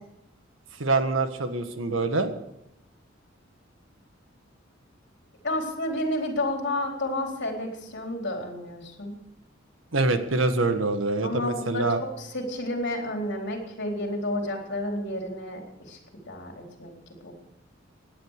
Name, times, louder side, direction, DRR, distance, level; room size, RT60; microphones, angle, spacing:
voice 1, 0.8-2.3 9.9-12.0, right 3 dB, 75° right, 8 dB, 1.6 m, -25 dB
voice 2, 5.4-9.1 11.2-15.6 15.9-16.0 16.3-16.9 17.2-17.3, left 1 dB, 60° left, 2 dB, 4.0 m, -31 dB
18.0 x 10.5 x 6.6 m, 0.81 s
head